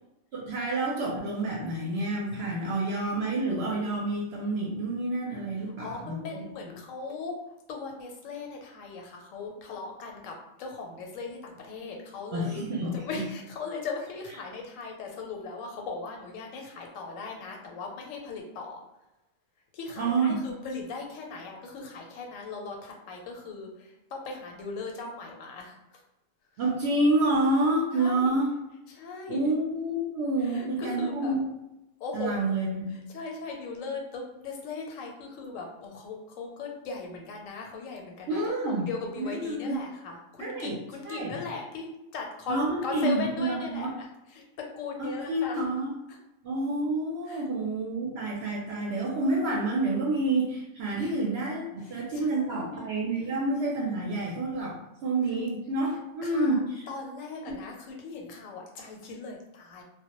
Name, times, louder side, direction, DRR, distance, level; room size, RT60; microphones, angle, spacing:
voice 1, 0.3-6.4 12.3-13.3 20.0-20.4 26.6-28.5 29.3-31.4 32.1-32.8 38.3-38.8 39.2-39.8 40.4-40.8 41.0-41.4 42.5-43.9 45.0-45.9 46.4-54.8 55.0-56.9 57.5-57.6, right 2 dB, 65° right, -4 dB, 0.7 m, -28 dB
voice 2, 5.8-7.4 7.7-10.3 10.6-12.6 12.9-18.8 19.7-25.7 27.9-28.4 28.9-29.5 30.4-31.3 32.0-32.5 33.1-38.4 38.6-41.9 42.1-44.1 44.3-44.4 44.8-45.6 47.3-47.4 51.0-51.1 51.9-52.9 56.2-56.6 56.9-59.8, left 4 dB, 85° left, 1 dB, 1.0 m, -38 dB
2.1 x 2.0 x 2.9 m, 0.93 s
omnidirectional pair, 1.3 m